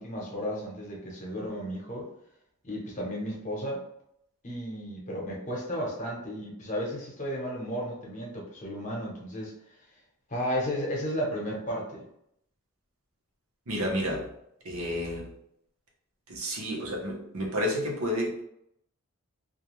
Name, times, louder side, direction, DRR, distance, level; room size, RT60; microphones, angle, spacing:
voice 1, 0.0-2.1 2.6-3.8 4.4-9.5 10.3-12.0, equal, 35° left, -3 dB, 0.8 m, -33 dB
voice 2, 13.7-14.3 14.6-15.3 16.3-18.4, equal, 75° right, -2 dB, 0.8 m, -30 dB
2.4 x 2.2 x 3.0 m, 0.75 s
head